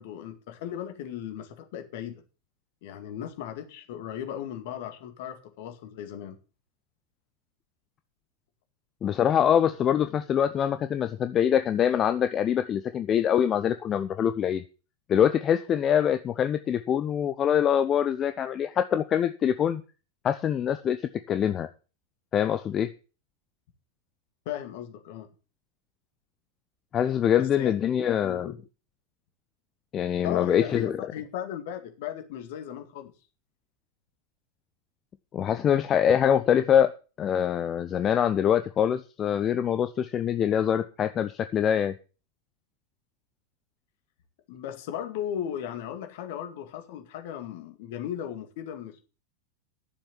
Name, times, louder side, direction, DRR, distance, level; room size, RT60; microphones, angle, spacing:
voice 1, 0.0-2.2 2.8-6.4 24.5-25.3 27.4-28.6 30.2-33.1 44.5-49.0, left 10 dB, 50° left, 2.1 m, -36 dB
voice 2, 9.0-14.6 15.1-19.8 20.2-21.0 21.3-21.7 22.3-22.9 26.9-28.5 29.9-31.0 35.3-36.9 37.2-41.9, left 9 dB, 25° left, 0.6 m, -24 dB
11.0 x 7.2 x 7.0 m
figure-of-eight pair, 90°, 0 cm